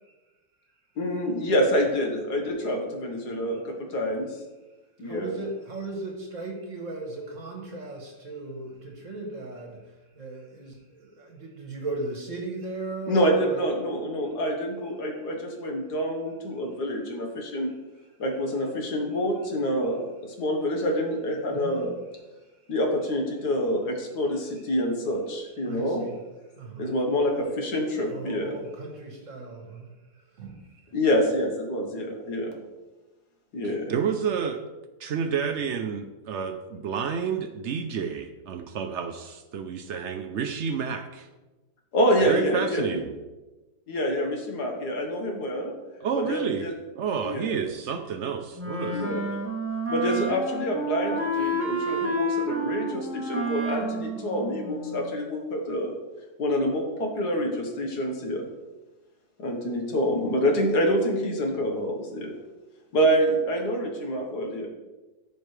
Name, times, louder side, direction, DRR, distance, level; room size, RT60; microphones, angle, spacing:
voice 1, 1.0-4.4 5.0-5.4 13.1-17.7 18.2-21.9 22.7-26.1 26.8-28.6 30.9-32.6 33.5-33.9 41.9-43.0 43.9-45.7 46.2-46.7 47.2-47.6 48.9-49.3 49.9-56.0 56.4-58.5 59.4-62.3 62.9-64.7, equal, 70° left, 2 dB, 1.9 m, -27 dB
voice 2, 5.0-13.6 21.5-21.9 25.6-26.2 26.5-26.9 28.1-29.9 30.4-30.8, right 2 dB, 50° right, 1 dB, 1.5 m, -37 dB
voice 3, 33.6-34.6 35.0-41.3 42.2-43.1 46.0-46.7 46.9-49.0, right 6 dB, 70° right, 7 dB, 0.7 m, -30 dB
Wind instrument woodwind instrument, 48.6-55.2, right 1 dB, 10° right, 0.7 m, -30 dB
14.0 x 5.4 x 3.3 m, 1.1 s
omnidirectional pair, 1.8 m